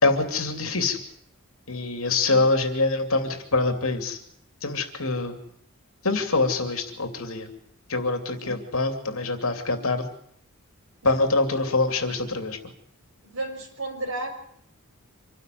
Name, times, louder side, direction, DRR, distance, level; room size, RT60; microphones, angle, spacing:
voice 1, 0.0-1.0 1.7-4.2 4.6-5.4 6.0-7.5 7.9-10.1 11.0-12.6, left 3 dB, 70° left, 6 dB, 2.8 m, -24 dB
voice 2, 13.2-14.3, right 2 dB, 60° right, 2 dB, 6.6 m, -33 dB
26.0 x 12.0 x 9.4 m, 0.69 s
head